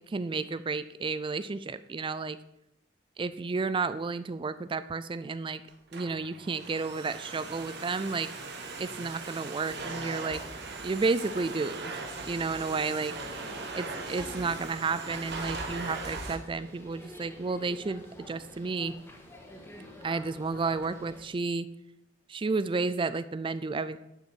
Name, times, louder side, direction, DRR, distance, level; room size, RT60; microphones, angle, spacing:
voice 1, 0.1-2.4 3.2-5.6 5.9-8.3 8.8-10.4 10.8-13.1 13.7-18.9 20.0-21.7 22.3-24.0, right 4 dB, 25° right, 14 dB, 0.4 m, -32 dB
Domestic sounds home sounds, 5.7-16.4, right 3 dB, 65° right, 1.5 m, -39 dB
sound 1, 12.5-21.3, left 1 dB, 15° left, 2.0 m, -49 dB
10.5 x 7.2 x 6.3 m, 0.87 s
head